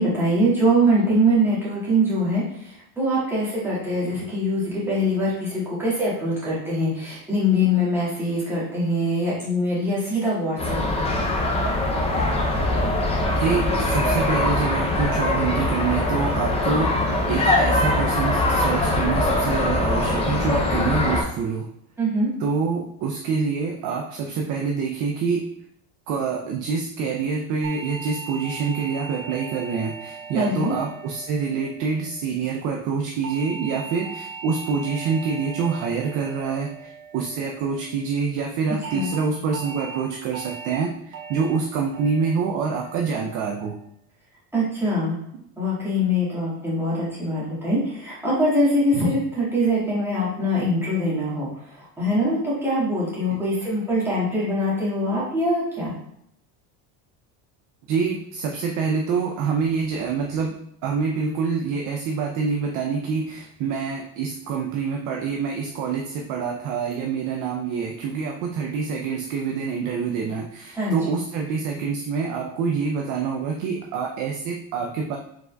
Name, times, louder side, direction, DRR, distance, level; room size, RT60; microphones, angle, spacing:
voice 1, 0.0-10.8 22.0-22.3 30.3-30.7 38.9-39.1 44.5-45.2 45.6-51.5 52.0-55.9 70.7-71.0, equal, 5° right, -9 dB, 1.6 m, -23 dB
sound 1, 10.6-21.2, left 1 dB, 15° left, 0.4 m, -22 dB
voice 2, 13.3-17.0 17.3-21.7 22.4-25.5 26.1-41.0 41.3-43.8 57.9-75.2, right 5 dB, 45° right, 1 dB, 0.4 m, -26 dB
sound 2, 27.6-32.1 33.2-37.7 38.8-39.1 39.5-39.9 40.3-40.7 41.1-41.5 41.9-42.3 42.7-43.1, right 5 dB, 75° right, 1.5 m, -39 dB
4.8 x 3.7 x 2.2 m, 0.73 s
cardioid pair, 145°, 45 cm